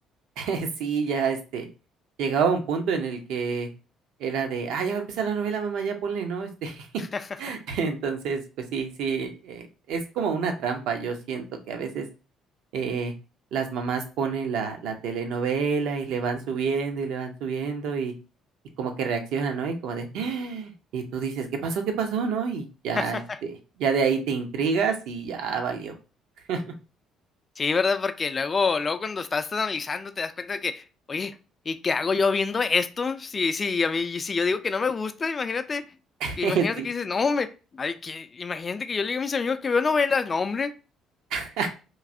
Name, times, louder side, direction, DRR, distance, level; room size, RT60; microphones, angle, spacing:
voice 1, 0.4-1.7 2.2-3.7 4.2-6.9 7.4-8.4 8.7-12.1 12.7-13.1 13.5-18.1 18.8-25.9 26.5-26.6 36.2-36.9 41.3-41.7, right 5 dB, 70° right, 0.5 m, -28 dB
voice 2, 23.0-23.4 27.6-31.3 31.7-35.8 36.4-40.7, left 4 dB, 35° left, 0.3 m, -26 dB
3.0 x 2.6 x 2.5 m
hypercardioid pair, 50°, 0 cm